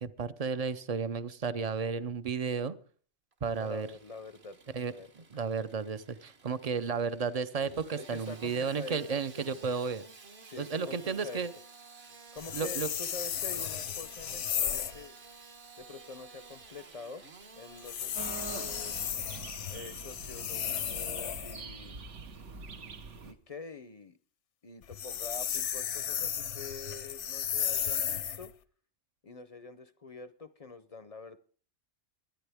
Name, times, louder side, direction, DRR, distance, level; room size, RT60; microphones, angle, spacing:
voice 1, 0.0-2.7 3.4-3.9 4.7-10.0 10.6-11.5 12.5-12.9, right 5 dB, 45° right, 14 dB, 0.5 m, -33 dB
Engine starting / Sawing, 3.3-19.1, right 4 dB, 60° right, 1.6 m, -53 dB
voice 2, 3.6-5.1 8.0-9.5 10.5-11.5 12.3-15.1 15.8-17.2 17.6-19.0 19.7-22.1 23.2-24.2 24.6-28.6 29.2-31.4, left 4 dB, 40° left, 13 dB, 0.6 m, -46 dB
sound 1, 12.4-15.0 17.8-21.6 24.8-28.5, left 9 dB, 75° left, 1.1 m, -34 dB
sound 2, 18.1-23.3, right 4 dB, 75° right, 1.4 m, -44 dB
22.0 x 9.6 x 3.5 m, 0.43 s
omnidirectional pair, 1.2 m